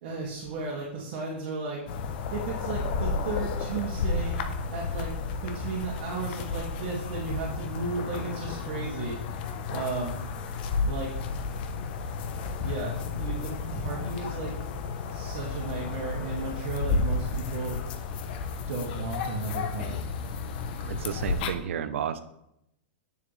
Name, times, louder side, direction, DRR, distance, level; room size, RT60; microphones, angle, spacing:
voice 1, 0.0-1.8 2.3-4.3 4.7-5.1 5.4-9.4 9.7-10.2 10.8-11.1 12.6-14.5 15.1-17.8 18.7-20.0, right 4 dB, 55° right, -4 dB, 2.2 m, -34 dB
sound 1, 1.9-21.5, left 4 dB, 50° left, 0.8 m, -32 dB
voice 2, 20.8-22.2, right 8 dB, 85° right, 10 dB, 0.7 m, -32 dB
9.4 x 7.0 x 3.3 m, 0.80 s
supercardioid pair, 160°, 7 cm